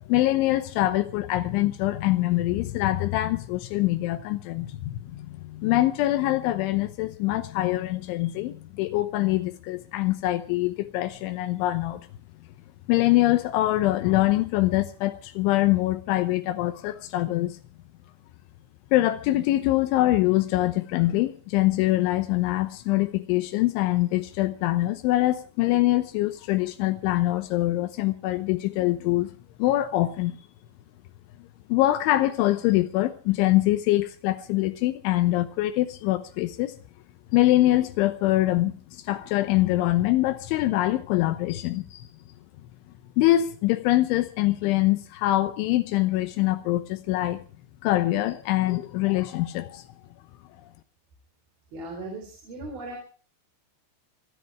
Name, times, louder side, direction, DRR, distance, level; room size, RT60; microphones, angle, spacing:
voice 1, 0.1-12.0 12.9-17.6 18.9-29.3 29.6-30.4 31.7-36.7 37.3-42.1 43.2-47.4 47.8-49.9, left 16 dB, 85° left, 3.3 m, -24 dB
voice 2, 51.7-53.0, right 2 dB, 55° right, 5.2 m, -37 dB
26.0 x 10.5 x 4.7 m
omnidirectional pair, 5.4 m